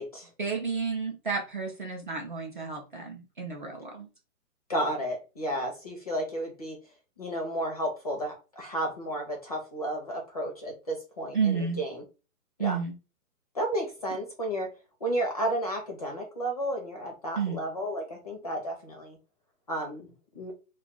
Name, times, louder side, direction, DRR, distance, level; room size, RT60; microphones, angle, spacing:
voice 1, 0.4-4.1 11.3-11.8 12.6-12.9 17.4-17.6, right 5 dB, 35° right, 1 dB, 0.5 m, -31 dB
voice 2, 4.7-6.8 7.2-12.0 12.6-12.8 13.5-14.7 15.0-19.2 19.7-20.1 20.3-20.5, right 1 dB, 25° left, 1 dB, 0.5 m, -32 dB
2.3 x 2.3 x 3.7 m, 0.31 s
hypercardioid pair, 160°, 45 cm